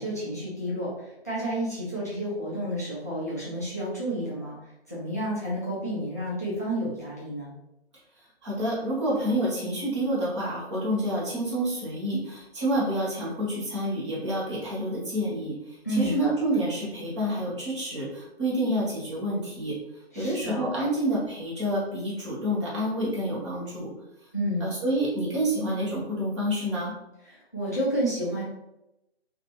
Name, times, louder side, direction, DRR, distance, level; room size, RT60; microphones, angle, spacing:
voice 1, 0.0-4.6 4.9-7.5 15.8-16.1 20.1-20.6 24.3-24.7 27.3-28.4, equal, 15° left, -9 dB, 0.5 m, -30 dB
voice 2, 8.4-19.8 20.1-23.9 24.6-26.9, right 1 dB, 30° right, -7 dB, 1.1 m, -28 dB
3.1 x 2.5 x 3.0 m, 0.89 s
figure-of-eight pair, 145°, 32 cm